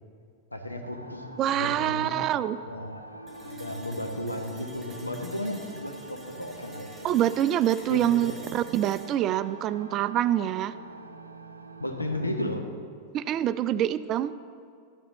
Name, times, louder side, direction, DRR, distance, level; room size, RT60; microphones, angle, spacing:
voice 1, 0.5-1.3 1.5-2.1 2.7-3.0 3.4-7.2 7.9-8.4 11.8-12.7, left 1 dB, 85° left, 4 dB, 0.9 m, -34 dB
sound 1, 0.8-12.5, right 2 dB, 80° right, 0.6 m, -45 dB
voice 2, 1.4-2.6 7.0-10.7 13.1-14.3, right 11 dB, 35° right, 14 dB, 0.3 m, -26 dB
sound 2, 3.3-11.3, equal, 10° right, 1.8 m, -49 dB
12.5 x 10.0 x 3.9 m, 2.3 s
figure-of-eight pair, 90°, 0 cm